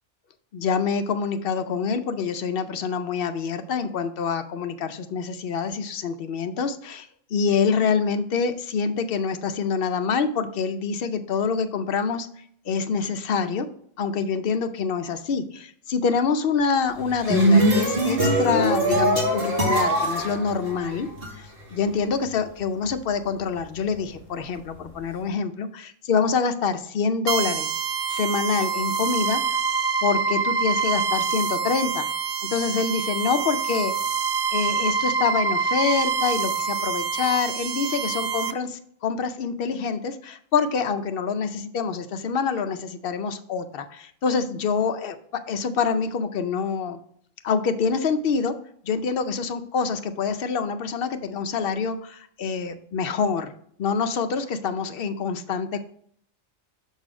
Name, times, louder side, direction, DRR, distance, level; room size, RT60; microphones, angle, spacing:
voice 1, 0.5-12.3 12.7-13.7 14.0-27.7 28.1-29.6 30.0-32.1 32.5-33.9 34.5-47.0 47.4-48.5 48.8-53.5 53.8-55.9, left 5 dB, 60° left, 9 dB, 0.6 m, -26 dB
sound 1, 17.0-21.3, right 1 dB, 45° right, 2.0 m, -21 dB
sound 2, 27.3-38.5, right 5 dB, 85° right, 0.4 m, -26 dB
6.3 x 4.1 x 4.8 m, 0.63 s
omnidirectional pair, 1.4 m